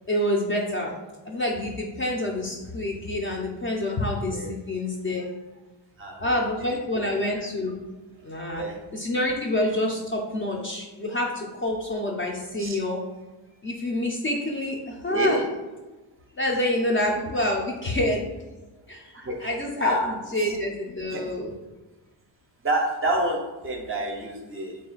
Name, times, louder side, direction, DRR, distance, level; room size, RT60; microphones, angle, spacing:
voice 1, 0.1-0.9 1.2-5.3 6.2-7.8 8.2-8.7 8.9-13.0 13.6-15.4 16.4-18.3 18.9-19.1 19.4-21.5, left 1 dB, 30° left, -1 dB, 0.4 m, -27 dB
voice 2, 6.0-6.8 8.5-8.8 12.6-12.8 15.1-15.5 19.1-19.5 19.8-20.2 20.5-20.6 21.1-21.2 22.6-24.8, right 1 dB, 30° right, 2 dB, 0.5 m, -28 dB
3.6 x 2.5 x 3.8 m, 1.2 s
cardioid pair, 130°, 47 cm